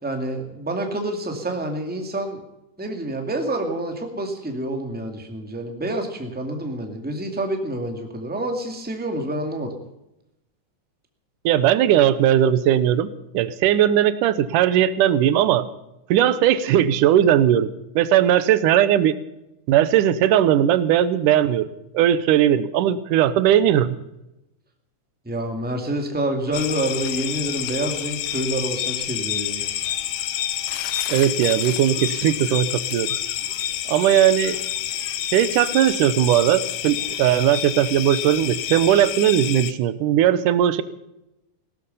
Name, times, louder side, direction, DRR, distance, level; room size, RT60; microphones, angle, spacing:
voice 1, 0.0-2.4 2.8-9.7 25.2-29.6, right 1 dB, 5° right, 4 dB, 1.7 m, -27 dB
voice 2, 11.5-13.1 13.3-15.7 16.1-19.1 19.7-21.7 21.9-23.9 31.1-33.1 33.9-34.6 35.3-40.8, right 11 dB, 85° right, 14 dB, 2.4 m, -18 dB
sound 1, 26.5-39.7, left 11 dB, 80° left, 2.4 m, -28 dB
17.0 x 13.0 x 5.5 m, 0.90 s
omnidirectional pair, 3.6 m